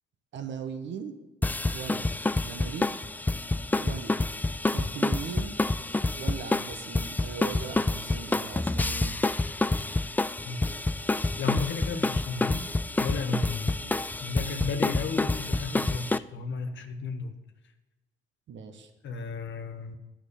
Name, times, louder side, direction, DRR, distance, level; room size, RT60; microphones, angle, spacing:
voice 1, 0.3-1.2 1.7-2.1 2.4-2.9 3.8-4.3 4.7-5.6 6.2-9.2 13.8-13.9 18.5-18.9, right 6 dB, 70° right, 7 dB, 1.4 m, -39 dB
sound 1, 1.4-16.2, left 2 dB, 10° left, 0.3 m, -28 dB
voice 2, 11.4-12.6 13.0-13.7 14.2-17.4 19.0-20.0, left 4 dB, 70° left, 6 dB, 1.3 m, -33 dB
10.0 x 6.0 x 8.5 m, 1.1 s
cardioid pair, 90°, 20 cm